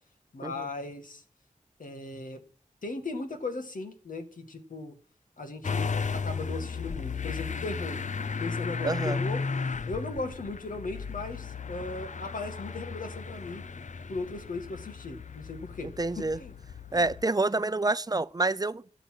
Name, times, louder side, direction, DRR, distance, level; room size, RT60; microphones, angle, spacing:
voice 1, 0.3-1.2 1.8-2.4 2.8-5.0 5.4-8.0 8.4-9.4 9.9-13.7 14.1-15.9 16.2-16.5 16.9-17.1, left 3 dB, 80° left, 2.1 m, -37 dB
Motor vehicle (road) / Engine starting, 5.6-17.3, left 5 dB, 65° left, 0.7 m, -35 dB
voice 2, 8.8-9.2 16.0-16.4 16.9-18.8, right 2 dB, 30° right, 0.6 m, -27 dB
12.0 x 7.0 x 7.8 m
cardioid pair, 45°, 14 cm